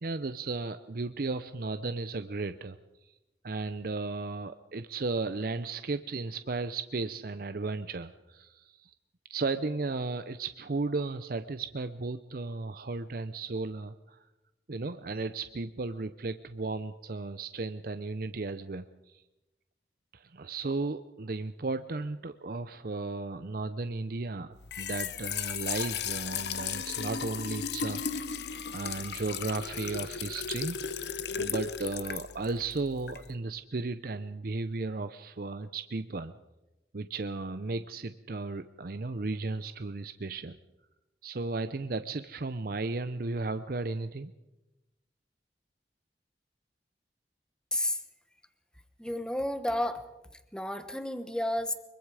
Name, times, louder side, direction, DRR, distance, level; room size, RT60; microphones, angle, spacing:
voice 1, 0.0-2.8 3.0-3.1 3.4-8.9 9.3-14.2 14.7-19.2 20.1-28.3 28.7-30.8 31.4-36.3 36.9-40.6 41.2-44.3, right 3 dB, 55° right, 11 dB, 0.6 m, -35 dB
Trickle dribble / Fill (with liquid), 24.6-33.3, left 7 dB, 75° left, 1.0 m, -36 dB
voice 2, 49.0-50.0 50.5-51.7, left 1 dB, 5° left, 10 dB, 1.2 m, -31 dB
24.0 x 22.5 x 4.9 m, 1.0 s
head